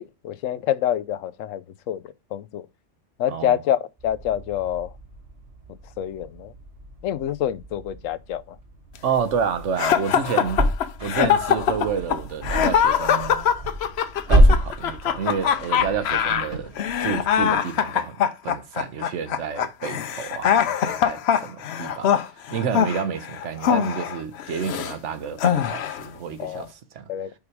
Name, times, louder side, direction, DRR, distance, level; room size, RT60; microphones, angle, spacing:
voice 1, 0.0-2.7 3.2-4.9 6.0-6.5 7.0-8.6 26.4-26.7 27.1-27.3, left 11 dB, 85° left, 1.0 m, -27 dB
sound 1, 4.0-17.5, equal, 25° right, 1.9 m, -27 dB
voice 2, 9.0-10.7 11.0-13.5 14.3-16.7 17.0-18.2 18.4-22.1 22.5-26.7 26.9-27.1, right 7 dB, 75° right, 1.1 m, -29 dB
sound 2, 9.8-25.0 25.4-26.1, left 9 dB, 65° left, 0.8 m, -23 dB
5.3 x 4.8 x 4.7 m
omnidirectional pair, 1.3 m